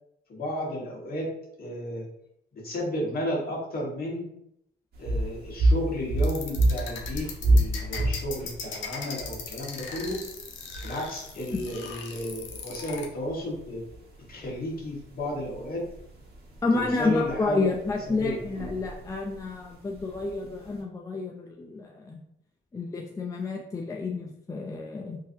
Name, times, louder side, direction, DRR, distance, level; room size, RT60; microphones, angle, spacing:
voice 1, 0.3-1.3 1.6-2.1 2.5-4.3 5.0-10.3 10.8-13.8 14.3-15.9 16.7-17.7 18.1-18.4, equal, 50° left, -4 dB, 1.4 m, -33 dB
sound 1, 4.9-20.8, right 1 dB, 55° right, 1.3 m, -30 dB
sound 2, 6.2-13.1, left 5 dB, 75° left, 0.7 m, -38 dB
voice 2, 16.6-22.2 22.7-25.2, left 3 dB, 15° left, 0 dB, 0.4 m, -30 dB
3.7 x 2.7 x 2.7 m, 0.77 s
cardioid pair, 90°, 20 cm